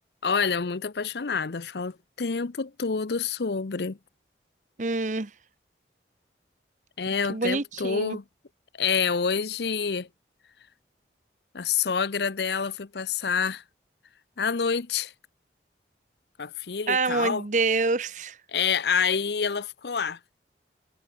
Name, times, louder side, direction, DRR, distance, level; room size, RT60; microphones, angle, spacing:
voice 1, 0.2-4.0 7.0-8.2 8.8-10.1 11.5-13.6 14.4-15.1 16.4-17.4 18.5-20.2, left 6 dB, 70° left, 0.7 m, -27 dB
voice 2, 4.8-5.3 7.3-8.2 16.9-18.4, right 3 dB, 45° right, 0.9 m, -26 dB
head